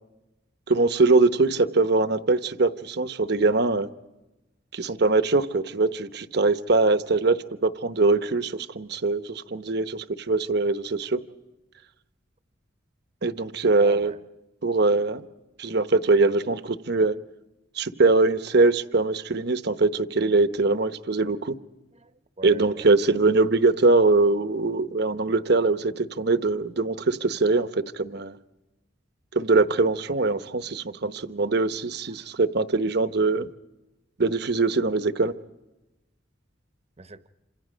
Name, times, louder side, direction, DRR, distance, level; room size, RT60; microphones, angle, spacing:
voice 1, 0.7-3.9 4.7-7.4 7.6-11.2 13.2-14.1 14.6-15.2 15.6-17.1 17.8-21.5 22.4-27.7 27.9-28.4 29.3-33.5 34.2-35.3, right 3 dB, 60° right, 0.9 m, -22 dB
voice 2, 13.8-14.2 21.9-22.9 32.1-32.4 37.0-37.3, right 3 dB, 35° right, 0.9 m, -43 dB
27.5 x 26.5 x 5.1 m
head